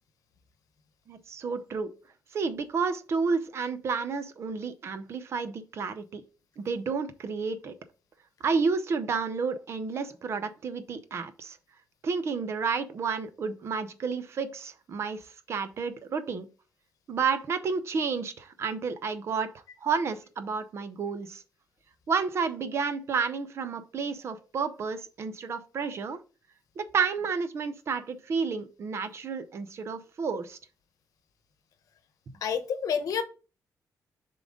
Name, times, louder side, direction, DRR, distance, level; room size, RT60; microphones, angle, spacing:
voice 1, 1.1-1.9 2.3-6.2 6.6-7.8 8.4-11.6 12.0-16.5 17.1-19.5 19.8-21.4 22.1-26.2 26.8-30.6, right 5 dB, 45° right, 0.7 m, -31 dB
voice 2, 32.4-33.2, left 7 dB, 65° left, 0.9 m, -28 dB
7.2 x 3.8 x 3.7 m
wide cardioid pair, 180°, 6 cm